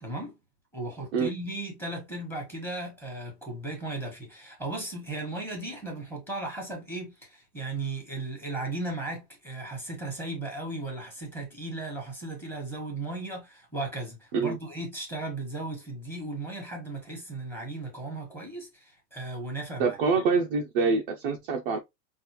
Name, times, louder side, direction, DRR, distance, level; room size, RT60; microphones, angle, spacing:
voice 1, 0.0-0.3 0.7-20.0, right 2 dB, 5° left, 1.2 m, -36 dB
voice 2, 19.8-21.8, right 4 dB, 35° right, 0.5 m, -25 dB
5.3 x 2.5 x 2.9 m
supercardioid pair, 160°, 49 cm